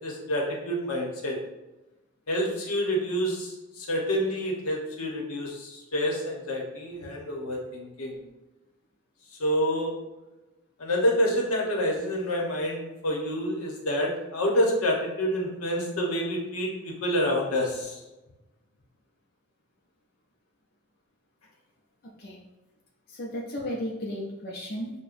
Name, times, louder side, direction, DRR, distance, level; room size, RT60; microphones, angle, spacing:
voice 1, 0.0-1.4 2.3-8.2 9.4-9.9 10.8-18.0, equal, 85° left, -1 dB, 1.0 m, -28 dB
voice 2, 23.1-24.9, equal, 45° left, -2 dB, 0.5 m, -34 dB
6.5 x 2.2 x 2.5 m, 1.0 s
head